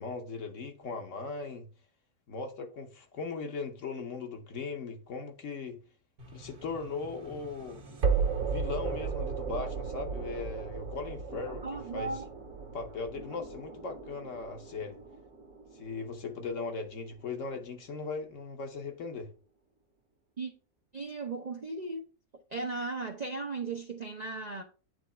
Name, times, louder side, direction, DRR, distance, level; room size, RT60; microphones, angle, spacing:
voice 1, 0.0-1.7 2.3-5.8 6.3-7.8 8.4-11.6 11.9-12.1 12.7-15.0 15.7-19.3, left 4 dB, 55° left, 1.2 m, -38 dB
sound 1, 6.2-17.2, right 5 dB, 65° right, 1.7 m, -36 dB
voice 2, 11.6-12.2 20.4-20.5 20.9-22.0 22.5-24.6, right 3 dB, 40° right, 0.6 m, -36 dB
9.2 x 3.1 x 4.3 m
omnidirectional pair, 1.6 m